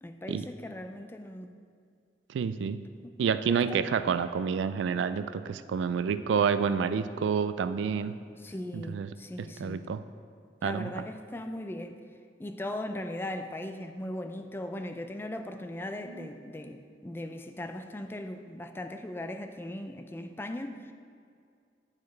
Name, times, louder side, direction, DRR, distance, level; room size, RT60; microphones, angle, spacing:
voice 1, 0.0-1.5 3.0-3.2 3.7-3.8 8.4-10.0 10.6-12.0 12.4-20.9, left 1 dB, 10° left, 7 dB, 0.3 m, -39 dB
voice 2, 2.3-2.8 3.2-8.2 8.7-9.1 9.6-10.0 10.6-10.9 16.2-16.3, right 6 dB, 80° right, 12 dB, 0.3 m, -28 dB
8.3 x 5.3 x 4.5 m, 2.2 s
head